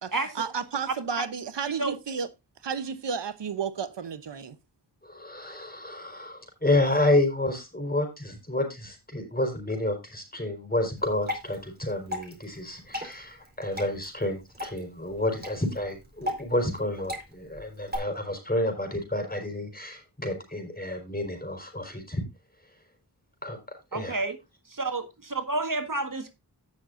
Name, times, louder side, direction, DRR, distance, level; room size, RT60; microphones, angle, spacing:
voice 1, 0.0-2.3 2.6-4.6, right 6 dB, 80° right, 0.9 m, -32 dB
voice 2, 5.0-22.2 23.4-24.2, left 1 dB, 20° left, 4.5 m, -29 dB
Water / Drip, 11.0-18.0, left 1 dB, 25° right, 4.3 m, -38 dB
voice 3, 23.9-24.4 24.7-26.3, right 2 dB, 50° right, 1.7 m, -29 dB
17.0 x 6.3 x 2.6 m
wide cardioid pair, 65°, 42 cm